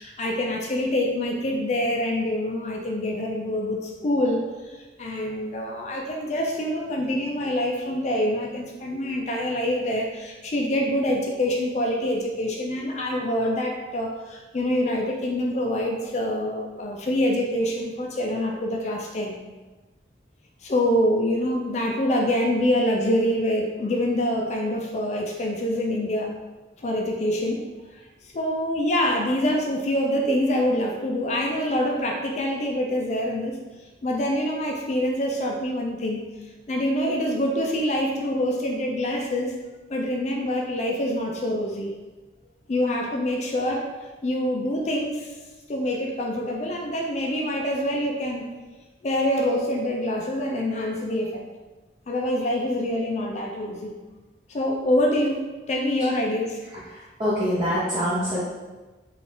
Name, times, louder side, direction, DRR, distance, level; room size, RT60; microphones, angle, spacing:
voice 1, 0.0-4.4 4.7-19.4 20.6-26.4 26.8-27.7 28.3-33.6 34.0-36.3 36.7-39.6 39.9-41.9 42.7-43.9 44.2-45.3 45.7-48.5 49.0-51.4 52.1-54.0 54.5-55.4 55.7-56.6, left 1 dB, 40° left, 1 dB, 0.4 m, -25 dB
voice 2, 56.7-58.4, equal, 30° right, -9 dB, 0.6 m, -25 dB
3.9 x 2.4 x 3.7 m, 1.2 s
head